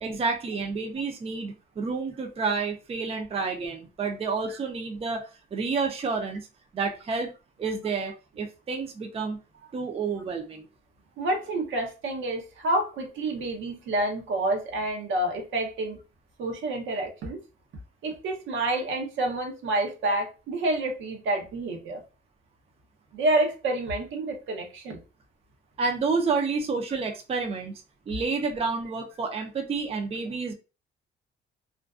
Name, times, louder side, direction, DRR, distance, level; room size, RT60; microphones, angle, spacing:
voice 1, 0.0-5.3 5.5-6.5 6.7-7.3 7.6-9.4 9.7-10.7 25.8-27.7 28.1-30.5, right 4 dB, 30° right, 0.5 m, -29 dB
voice 2, 11.2-16.0 16.4-17.4 18.0-22.0 23.1-25.0, right 2 dB, 75° right, 0.7 m, -28 dB
2.4 x 2.2 x 2.3 m
cardioid pair, 90°, 20 cm